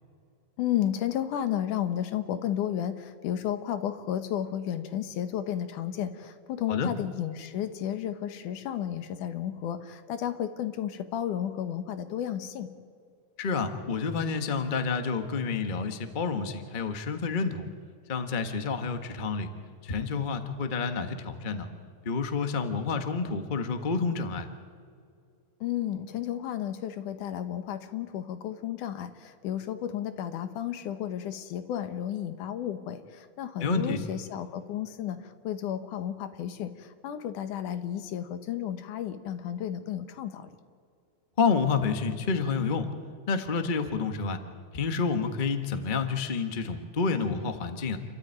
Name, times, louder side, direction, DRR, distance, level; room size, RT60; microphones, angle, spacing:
voice 1, 0.6-12.7 25.6-35.2 35.4-40.5, left 10 dB, 85° left, 10 dB, 2.7 m, -32 dB
voice 2, 13.4-17.7 18.1-19.5 19.8-21.7 22.0-24.5 33.6-34.0 41.4-42.9 43.3-44.4 44.7-48.0, left 5 dB, 60° left, 7 dB, 0.5 m, -29 dB
28.5 x 13.0 x 9.2 m, 2.3 s
omnidirectional pair, 3.5 m